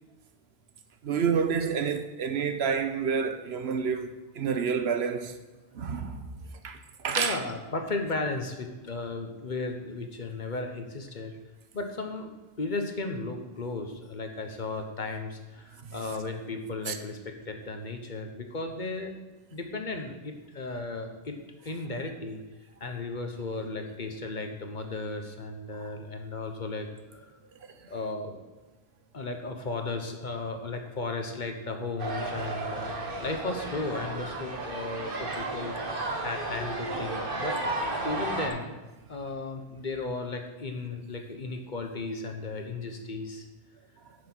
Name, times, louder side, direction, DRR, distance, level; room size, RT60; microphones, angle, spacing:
voice 1, 1.0-5.3 5.7-6.2 6.6-6.8 7.0-7.4 16.9-17.0, right 6 dB, 80° right, 1.1 m, -28 dB
voice 2, 7.2-11.3 11.7-19.2 19.5-21.4 21.6-22.4 22.8-27.2 27.9-28.4 29.1-32.9 33.2-35.8 36.2-37.6 38.0-38.7 39.1-43.5, left 3 dB, 50° left, 1.2 m, -35 dB
sound 1, 32.0-38.5, right 2 dB, 60° right, 1.4 m, -33 dB
9.2 x 6.8 x 6.2 m
omnidirectional pair, 1.1 m